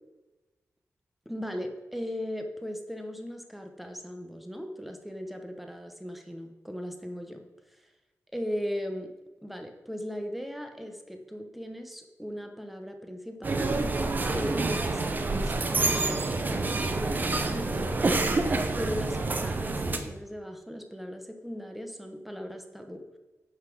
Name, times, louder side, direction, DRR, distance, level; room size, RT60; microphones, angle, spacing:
voice 1, 1.2-7.4 8.3-9.1 9.4-17.9 18.8-23.0, equal, ahead, 5 dB, 1.0 m, -38 dB
sound 1, 13.4-20.0, right 3 dB, 35° right, 0.8 m, -27 dB
9.4 x 5.9 x 6.2 m, 1.1 s
wide cardioid pair, 180°, 6 cm